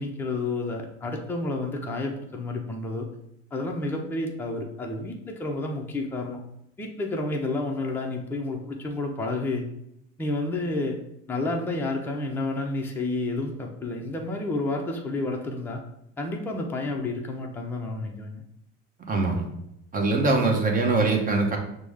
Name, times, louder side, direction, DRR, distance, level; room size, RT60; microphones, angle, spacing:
voice 1, 0.0-3.1 3.5-6.4 6.8-9.6 10.2-11.0 11.3-15.8 16.2-18.4, left 2 dB, 5° left, 0 dB, 0.5 m, -30 dB
voice 2, 19.1-19.5 19.9-21.6, right 3 dB, 25° right, 2 dB, 0.9 m, -22 dB
6.0 x 2.1 x 3.5 m, 0.80 s
supercardioid pair, 115°, 31 cm